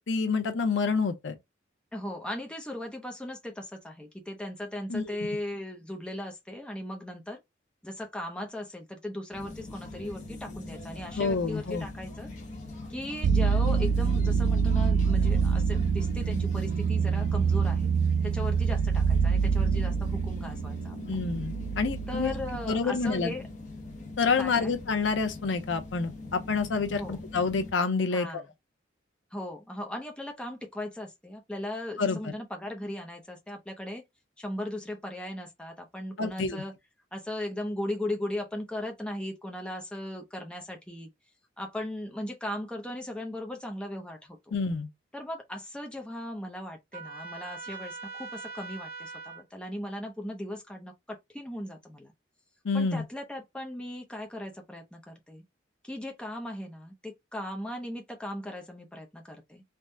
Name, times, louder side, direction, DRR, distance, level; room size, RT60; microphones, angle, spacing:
voice 1, 0.0-1.4 4.9-5.2 11.2-11.9 21.1-22.3 22.7-23.3 24.2-28.4 32.0-32.2 36.2-36.6 44.5-44.9 52.6-53.0, left 4 dB, 80° left, 0.6 m, -28 dB
voice 2, 1.9-7.4 7.8-12.3 12.9-17.9 18.2-21.2 22.1-23.4 24.4-24.7 26.9-27.2 28.1-28.5 29.3-34.0 34.4-36.7 37.1-41.1 41.6-44.4 45.1-52.1 52.7-55.4 55.8-59.6, left 1 dB, 5° left, 0.5 m, -37 dB
sound 1, 9.3-27.7, left 2 dB, 40° left, 0.8 m, -42 dB
sound 2, 13.2-22.8, right 5 dB, 70° right, 0.3 m, -26 dB
Trumpet, 46.9-49.4, right 4 dB, 45° right, 1.4 m, -41 dB
3.5 x 2.1 x 2.6 m
head